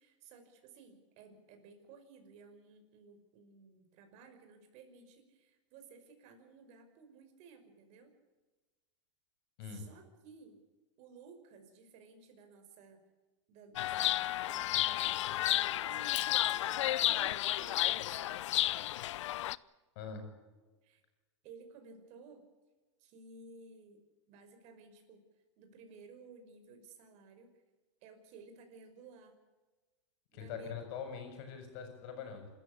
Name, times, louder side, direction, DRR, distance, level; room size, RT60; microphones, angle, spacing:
voice 1, 0.0-8.1 9.6-10.6 11.0-13.0 13.5-16.2 16.7-18.8 20.8-21.0 21.4-22.4 23.0-25.2 25.6-27.5 28.0-29.4 30.3-30.8, right 4 dB, 45° right, 6 dB, 5.5 m, -56 dB
Chirp tweet, 13.8-19.6, left 14 dB, 75° left, 0.6 m, -32 dB
voice 2, 20.0-20.3 30.3-32.5, left 6 dB, 55° left, 6 dB, 7.1 m, -43 dB
27.0 x 14.0 x 8.6 m, 1.2 s
hypercardioid pair, 125°, 16 cm